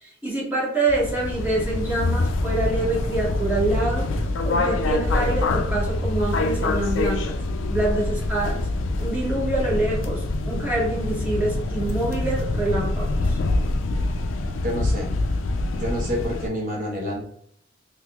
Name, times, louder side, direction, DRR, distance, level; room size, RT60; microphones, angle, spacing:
voice 1, 0.0-4.1 4.4-7.4 7.7-8.6 9.0-13.4, right 2 dB, 10° right, -7 dB, 1.4 m, -26 dB
sound 1, 0.9-16.5, left 2 dB, 85° left, 0.4 m, -25 dB
voice 2, 14.6-15.1 15.7-17.2, equal, 45° right, -2 dB, 1.0 m, -28 dB
3.8 x 2.8 x 2.3 m, 0.68 s
head